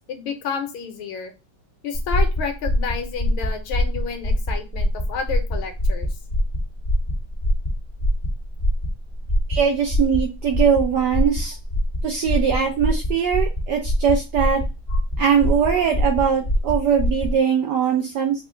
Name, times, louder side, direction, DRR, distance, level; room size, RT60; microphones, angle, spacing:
voice 1, 0.1-1.3 1.8-6.1 14.9-15.0, left 6 dB, 75° left, 6 dB, 1.5 m, -30 dB
sound 1, 1.9-17.4, equal, 25° left, 0.7 m, -23 dB
voice 2, 9.5-11.6 12.0-14.6 15.2-18.4, right 7 dB, 80° right, 2 dB, 0.9 m, -21 dB
3.7 x 2.1 x 3.6 m, 0.27 s
omnidirectional pair, 2.3 m